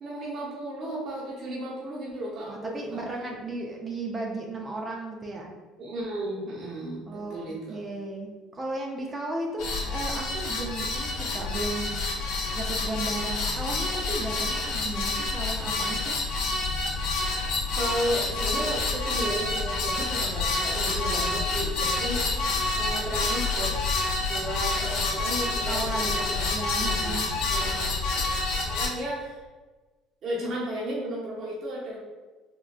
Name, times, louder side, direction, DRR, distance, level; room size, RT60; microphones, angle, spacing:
voice 1, 0.0-3.0 5.8-7.8 17.7-23.7 24.3-26.5 26.8-27.9 28.6-29.4 30.2-32.0, right 1 dB, 45° right, -5 dB, 0.8 m, -34 dB
voice 2, 2.5-5.5 7.1-12.0 12.5-16.2 22.0-22.6 25.7-27.3, right 2 dB, 20° right, 0 dB, 0.4 m, -35 dB
sound 1, 9.6-28.9, left 3 dB, 70° left, 0.6 m, -28 dB
3.6 x 2.2 x 2.3 m, 1.3 s
cardioid pair, 140°, 0 cm